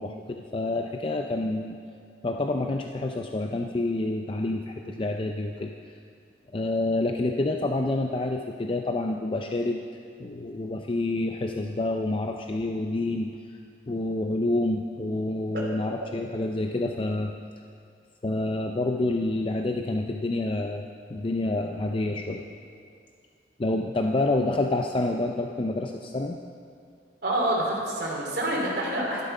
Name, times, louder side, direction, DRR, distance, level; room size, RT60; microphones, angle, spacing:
voice 1, 0.0-1.8 2.2-5.7 6.5-9.8 10.2-13.3 13.9-17.3 18.2-20.8 21.1-22.5 23.6-26.4, left 2 dB, 30° left, 3 dB, 0.5 m, -28 dB
voice 2, 27.2-29.2, right 1 dB, 65° right, -3 dB, 3.2 m, -27 dB
11.5 x 11.5 x 5.5 m, 2.3 s
head